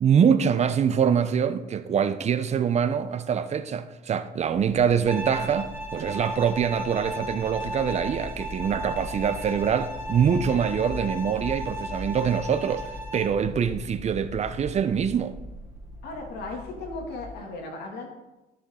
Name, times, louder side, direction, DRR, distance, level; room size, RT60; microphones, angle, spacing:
voice 1, 0.0-15.3, right 7 dB, 40° right, 0.7 m, -24 dB
sound 1, 4.5-17.4, left 1 dB, ahead, 4.0 m, -41 dB
Bowed string instrument, 5.1-13.4, right 1 dB, 15° right, 2.3 m, -36 dB
voice 2, 16.0-18.1, left 3 dB, 75° left, 2.4 m, -36 dB
13.0 x 7.0 x 3.8 m
cardioid pair, 110°, 17 cm